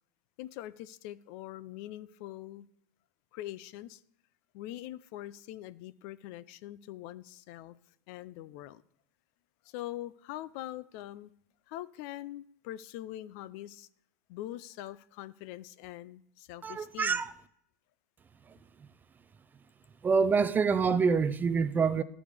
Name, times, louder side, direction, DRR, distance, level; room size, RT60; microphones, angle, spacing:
voice 1, 0.4-2.7 3.3-4.0 4.5-7.8 8.1-8.8 9.6-11.3 11.7-13.9 14.3-17.2, left 14 dB, 60° left, 0.4 m, -43 dB
voice 2, 16.6-17.3 18.5-18.6 20.0-22.0, right 5 dB, 20° right, 0.4 m, -26 dB
13.0 x 4.9 x 3.4 m
supercardioid pair, 120°, 10 cm